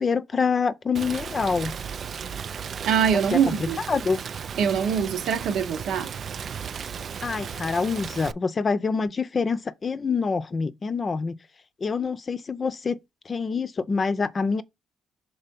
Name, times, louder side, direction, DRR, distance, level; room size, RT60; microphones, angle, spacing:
voice 1, 0.0-1.7 3.3-3.5 3.9-4.2 7.2-11.4 11.8-13.0 13.3-14.6, left 5 dB, 35° left, 0.6 m, -26 dB
Rain, 0.9-8.3, right 7 dB, 50° right, 0.3 m, -35 dB
voice 2, 2.8-3.8 4.6-6.1, right 7 dB, 80° right, 0.9 m, -23 dB
5.6 x 3.9 x 5.2 m
cardioid pair, 90°, 0 cm